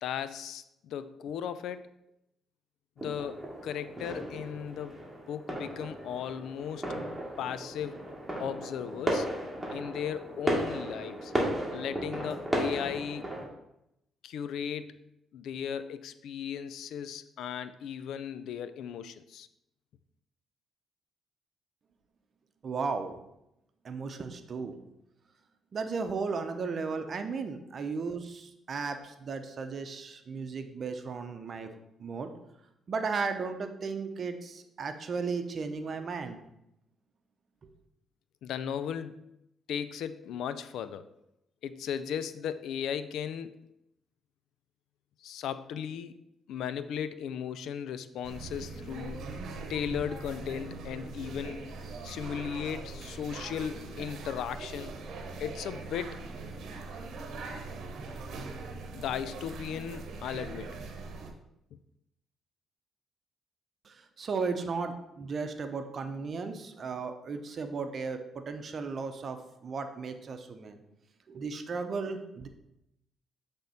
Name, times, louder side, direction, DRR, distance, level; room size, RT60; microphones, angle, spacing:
voice 1, 0.0-1.9 3.0-7.0 7.4-8.1 8.4-9.3 9.7-11.3 11.7-13.3 14.2-15.0 15.3-19.5 38.4-39.3 39.7-41.1 41.6-43.5 45.2-46.1 46.5-49.2 49.7-51.7 52.0-55.0 55.4-56.2 58.9-60.7, left 8 dB, 80° left, 13 dB, 0.4 m, -36 dB
sound 1, 3.0-13.5, right 1 dB, 5° right, 1.9 m, -35 dB
voice 2, 22.6-23.1 23.8-24.8 25.7-31.7 32.0-32.3 32.9-36.4 63.8-69.4 69.6-70.8 71.3-72.5, right 4 dB, 50° right, 7 dB, 0.7 m, -35 dB
sound 2, 48.2-61.3, right 3 dB, 70° right, 0.9 m, -41 dB
7.8 x 3.5 x 4.2 m, 0.84 s
cardioid pair, 90°, 0 cm